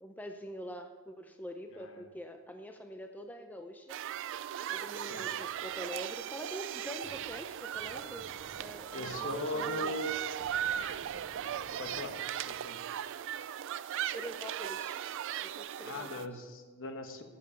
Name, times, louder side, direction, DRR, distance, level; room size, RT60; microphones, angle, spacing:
voice 1, 0.0-4.0 4.7-8.3 8.6-10.0 14.1-15.0 15.4-16.3, equal, 10° left, 6 dB, 0.5 m, -45 dB
sound 1, 3.9-16.3, right 10 dB, 60° right, 0.3 m, -38 dB
sound 2, 7.0-7.4 7.7-9.3 9.6-9.8 10.1-12.1, right 1 dB, 20° right, 0.9 m, -55 dB
voice 2, 8.9-10.1 11.8-12.2 12.5-12.8 15.8-17.2, left 1 dB, 60° left, 6 dB, 1.1 m, -39 dB
10.0 x 7.5 x 5.7 m, 1.4 s
head